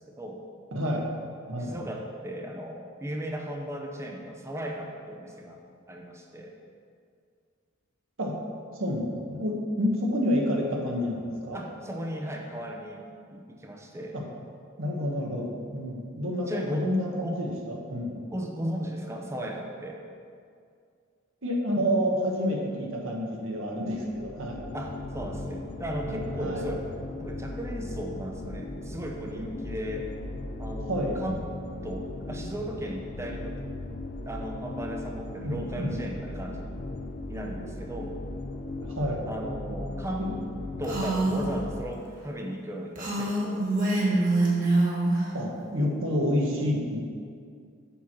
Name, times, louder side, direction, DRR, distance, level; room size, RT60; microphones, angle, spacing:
voice 1, 0.7-1.1 1.5-1.8 8.2-8.3 8.8-11.6 14.1-14.2 14.8-18.2 21.4-24.7 26.0-26.7 30.9-31.2 35.4-36.0 38.8-39.2 40.2-40.3 45.3-47.0, equal, 70° right, -1 dB, 1.2 m, -29 dB
voice 2, 1.6-5.6 5.9-6.5 11.5-13.0 13.3-14.2 16.5-16.9 17.2-17.4 18.3-20.0 24.7-26.8 27.1-30.1 30.6-31.4 31.8-33.6 34.2-36.7 37.3-38.2 39.3-40.3 40.8-44.3, equal, 15° right, 1 dB, 0.6 m, -36 dB
sound 1, 23.8-41.8, left 2 dB, 40° left, 0.5 m, -38 dB
Female speech woman speaking, 40.8-41.5 42.9-45.2, right 2 dB, 45° right, 1.5 m, -25 dB
7.0 x 4.5 x 6.0 m, 2.3 s
head